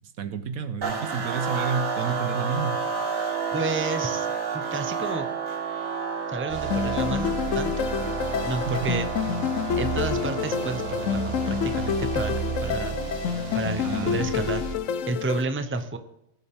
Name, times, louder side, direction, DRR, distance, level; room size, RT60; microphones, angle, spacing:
voice 1, 0.2-2.8 8.7-8.9 13.8-14.5, right 6 dB, 90° right, 10 dB, 1.4 m, -30 dB
sound 1, 0.8-14.2, right 6 dB, 70° right, 2.2 m, -31 dB
voice 2, 3.5-4.3 4.5-5.3 6.3-7.9 8.2-9.1 9.7-13.0 13.5-14.6 15.1-16.0, right 3 dB, 10° right, 8 dB, 0.7 m, -31 dB
sound 2, 6.5-14.7, right 6 dB, 45° right, 1.5 m, -34 dB
sound 3, 6.7-15.4, left 8 dB, 70° left, 1.0 m, -28 dB
18.5 x 7.0 x 3.6 m, 0.84 s
omnidirectional pair, 1.4 m